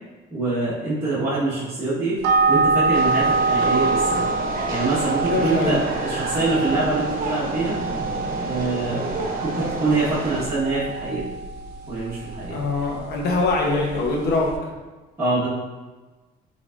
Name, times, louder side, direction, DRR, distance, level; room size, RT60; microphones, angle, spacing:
voice 1, 0.3-2.2 2.5-4.3 4.7-7.8 8.4-9.1 9.4-11.2 11.9-12.6 15.2-15.5, right 3 dB, 15° right, -12 dB, 1.3 m, -24 dB
sound 1, 2.2-14.6, right 3 dB, 80° right, 0.5 m, -26 dB
sound 2, 2.9-10.4, right 2 dB, 60° right, 0.9 m, -30 dB
voice 2, 5.3-5.8 12.5-14.5, left 3 dB, 75° left, 0 dB, 0.9 m, -23 dB
5.1 x 3.5 x 2.5 m, 1.2 s
cardioid pair, 110°, 17 cm